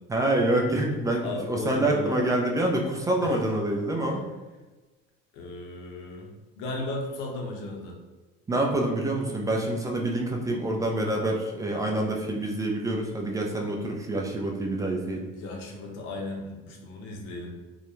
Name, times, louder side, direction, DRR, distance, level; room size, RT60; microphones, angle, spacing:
voice 1, 0.1-4.2 8.5-15.3, right 1 dB, 15° right, 0 dB, 0.4 m, -26 dB
voice 2, 1.2-2.2 3.2-3.4 5.3-6.3 6.6-8.0 15.3-17.5, left 2 dB, 70° left, 0 dB, 0.7 m, -35 dB
2.3 x 2.1 x 3.0 m, 1.2 s
supercardioid pair, 105°, 21 cm